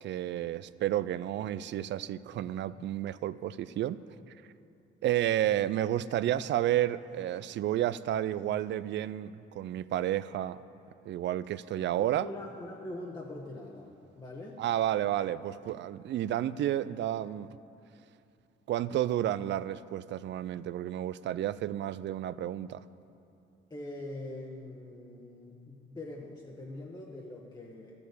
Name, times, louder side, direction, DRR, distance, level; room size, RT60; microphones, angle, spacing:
voice 1, 0.0-4.0 5.0-10.6 11.1-12.3 14.6-17.6 18.7-22.8, right 12 dB, 65° right, 16 dB, 0.4 m, -31 dB
voice 2, 12.0-14.6 23.7-27.9, left 2 dB, 20° left, -2 dB, 1.2 m, -43 dB
12.5 x 6.8 x 8.3 m, 2.6 s
cardioid pair, 90°, 20 cm